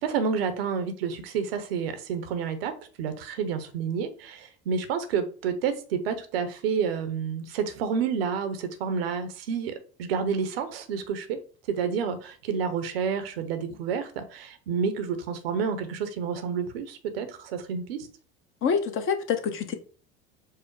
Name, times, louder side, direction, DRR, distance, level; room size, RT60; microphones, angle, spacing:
voice 1, 0.0-11.4 11.7-18.1, right 6 dB, 75° right, 0.8 m, -29 dB
voice 2, 18.6-19.7, left 6 dB, 45° left, 0.9 m, -26 dB
4.7 x 2.1 x 4.5 m
hypercardioid pair, 70°, 30 cm